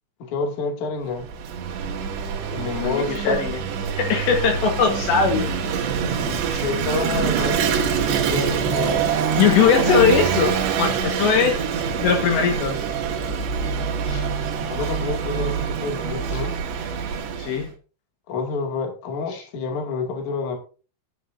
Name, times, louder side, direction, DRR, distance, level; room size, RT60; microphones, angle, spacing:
voice 1, 0.3-1.3 2.5-3.4 6.2-9.0 14.7-16.5 18.3-20.6, left 4 dB, 45° left, 3 dB, 3.0 m, -28 dB
Vehicle / Engine, 1.1-17.7, right 7 dB, 70° right, 3.6 m, -25 dB
voice 2, 2.8-3.6 4.0-5.9 6.5-6.6 9.4-11.6 12.0-12.8 14.1-14.3 17.4-17.7 19.3-19.5, left 6 dB, 70° left, 3 dB, 3.4 m, -20 dB
13.5 x 9.9 x 2.6 m, 0.36 s
omnidirectional pair, 5.6 m